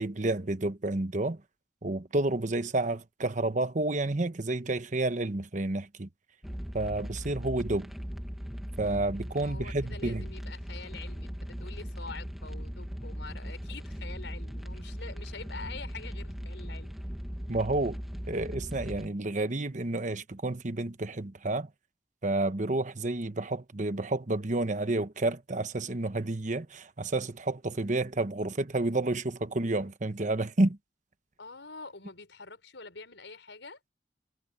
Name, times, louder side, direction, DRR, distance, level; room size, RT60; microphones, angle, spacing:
voice 1, 0.0-1.4 1.8-6.1 6.7-7.9 8.8-10.2 17.5-18.0 18.3-21.7 22.2-30.8, right 2 dB, 45° right, 1.1 m, -30 dB
sound 1, 6.4-19.1, equal, ahead, 1.7 m, -39 dB
voice 2, 9.4-17.0 31.4-33.8, left 4 dB, 85° left, 5.1 m, -46 dB
head